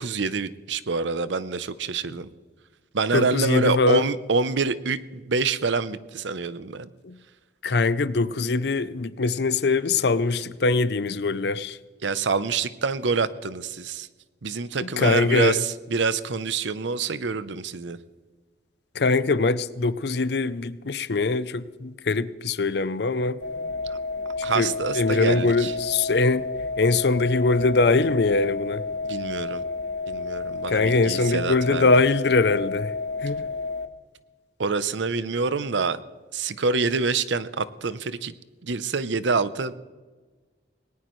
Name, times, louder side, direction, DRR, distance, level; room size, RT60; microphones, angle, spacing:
voice 1, 0.0-2.3 2.9-6.9 12.0-14.1 14.4-18.0 23.9-24.0 24.4-25.7 29.0-29.6 30.1-31.9 34.6-36.0 36.3-38.3 38.6-39.7, right 4 dB, 85° right, 0.7 m, -26 dB
voice 2, 3.1-4.0 7.0-7.1 7.6-11.8 14.8-15.6 18.9-23.4 24.5-26.5 26.8-28.8 30.7-32.9 33.2-33.4, left 3 dB, 65° left, 0.6 m, -22 dB
sound 1, 23.4-33.9, left 3 dB, 80° left, 1.0 m, -31 dB
19.0 x 18.5 x 3.2 m
head